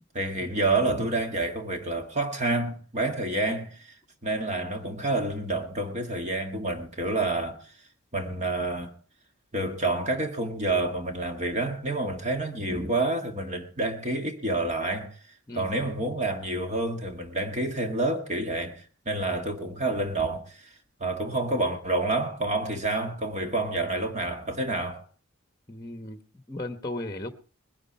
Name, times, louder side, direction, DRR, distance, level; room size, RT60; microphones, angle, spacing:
voice 1, 0.1-4.0 4.2-7.7 8.1-8.9 9.5-15.2 15.5-20.7 21.0-25.1, right 2 dB, 35° right, 1.7 m, -28 dB
voice 2, 25.7-26.2 26.5-27.3, left 1 dB, 20° left, 1.1 m, -36 dB
21.0 x 11.0 x 4.2 m
head